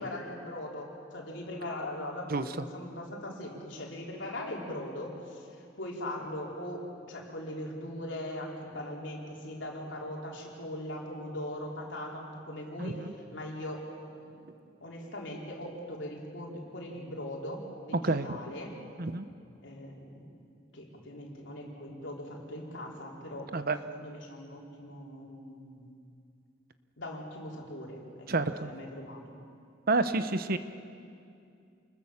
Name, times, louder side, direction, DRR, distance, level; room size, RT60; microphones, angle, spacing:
voice 1, 0.0-14.3 14.8-18.7 19.6-20.3 20.7-23.5 23.9-25.9 27.0-28.3 28.6-29.4, left 1 dB, 65° left, -1 dB, 4.2 m, -40 dB
voice 2, 2.3-2.7 12.8-13.1 18.0-18.4 19.0-19.3 23.5-23.8 28.3-28.7 29.9-30.6, right 3 dB, 50° right, 11 dB, 0.8 m, -29 dB
28.5 x 21.0 x 7.2 m, 2.5 s
head